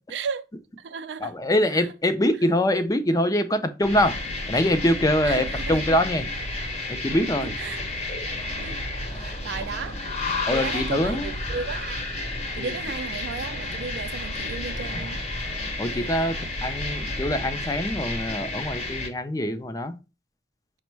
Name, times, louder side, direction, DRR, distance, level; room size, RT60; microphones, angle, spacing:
voice 1, 0.1-0.4 0.8-1.3 1.7-1.9 5.2-6.0 7.3-7.8 8.6-8.8 9.1-10.0 10.5-12.1 12.5-15.2, right 5 dB, 75° right, 0.4 m, -34 dB
voice 2, 1.2-4.2 4.5-6.2 6.9-7.5 10.5-11.3 12.6-12.7 15.8-19.9, left 1 dB, 20° left, 0.4 m, -24 dB
sound 1, 3.8-19.1, left 2 dB, 35° left, 0.9 m, -31 dB
5.2 x 2.1 x 4.4 m
head